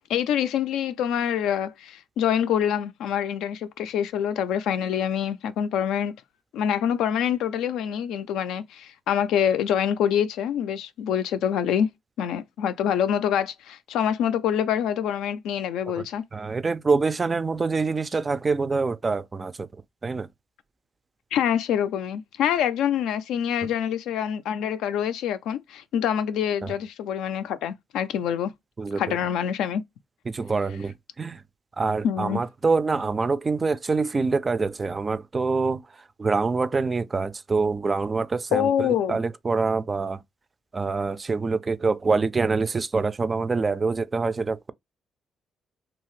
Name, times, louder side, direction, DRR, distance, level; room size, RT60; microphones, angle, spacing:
voice 1, 0.1-6.1 6.5-11.9 12.2-16.2 21.3-28.5 29.0-29.8 32.0-32.4 38.5-39.2, left 9 dB, 85° left, 0.3 m, -25 dB
voice 2, 16.3-19.7 20.0-20.3 23.6-23.7 26.6-26.8 28.8-29.2 30.3-31.4 31.8-40.2 40.7-44.7, right 4 dB, 30° right, 0.3 m, -25 dB
2.7 x 2.4 x 3.1 m
cardioid pair, 90°, 0 cm